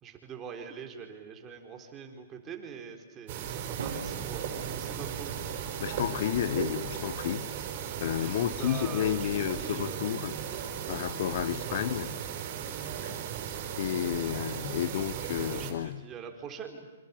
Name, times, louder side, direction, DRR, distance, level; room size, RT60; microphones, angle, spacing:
voice 1, 0.0-5.3 8.2-10.2 11.7-11.8 15.3-16.9, right 7 dB, 20° right, 3.8 m, -44 dB
sound 1, 3.3-15.7, right 8 dB, 40° right, 5.6 m, -36 dB
Drum, 3.8-5.9, right 5 dB, 70° right, 3.6 m, -44 dB
voice 2, 5.8-7.5 8.0-12.1 13.0-13.2 13.8-16.0, left 11 dB, 50° left, 1.0 m, -31 dB
27.0 x 26.5 x 7.1 m
hypercardioid pair, 150°, 0 cm